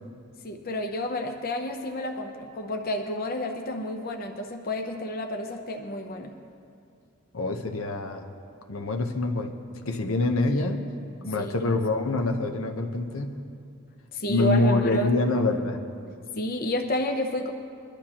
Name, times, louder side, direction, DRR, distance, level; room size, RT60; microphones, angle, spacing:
voice 1, 0.4-6.4 11.4-11.5 14.1-15.1 16.4-17.5, left 1 dB, 45° left, 4 dB, 0.8 m, -30 dB
voice 2, 7.3-8.2 8.7-9.5 9.9-10.8 11.2-13.4 14.3-15.8, left 2 dB, 80° left, 4 dB, 0.9 m, -25 dB
22.5 x 12.0 x 3.0 m, 2.4 s
head